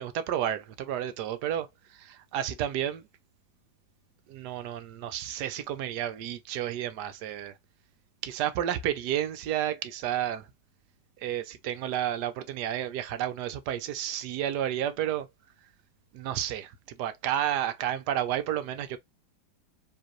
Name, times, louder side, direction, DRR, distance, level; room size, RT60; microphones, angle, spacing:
voice 1, 0.0-3.1 4.3-7.6 8.2-10.5 11.2-15.3 16.1-19.0, right 11 dB, 70° right, 1.1 m, -31 dB
4.7 x 3.1 x 3.0 m
omnidirectional pair, 2.1 m